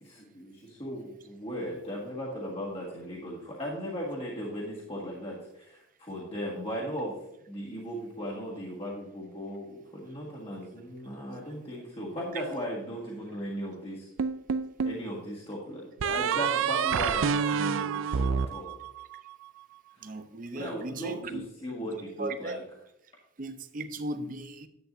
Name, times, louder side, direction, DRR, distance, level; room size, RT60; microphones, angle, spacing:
voice 1, 0.0-7.2 7.5-14.1 14.8-18.7 20.5-22.6, equal, 30° left, 1.7 m, -37 dB
sound 1, 14.2-15.0 16.0-19.3, right 6 dB, 80° right, 0.4 m, -28 dB
voice 2, 20.0-21.5 22.2-22.6 23.4-24.7, right 2 dB, 40° right, 0.6 m, -37 dB
10.5 x 8.4 x 2.6 m
head